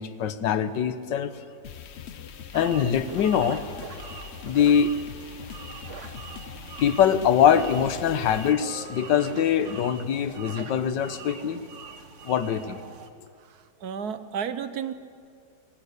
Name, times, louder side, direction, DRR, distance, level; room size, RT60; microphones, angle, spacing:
voice 1, 0.0-1.3 2.5-3.8 4.4-4.9 6.8-11.6 12.2-12.8, left 8 dB, 85° left, 12 dB, 1.6 m, -23 dB
sound 1, 1.6-8.5, left 8 dB, 50° left, 0.8 m, -42 dB
Spooky Wood, 2.5-13.1, right 5 dB, 45° right, 1.4 m, -42 dB
voice 2, 13.4-14.9, right 7 dB, 65° right, 11 dB, 1.4 m, -33 dB
22.0 x 19.0 x 8.4 m, 2.2 s
omnidirectional pair, 1.9 m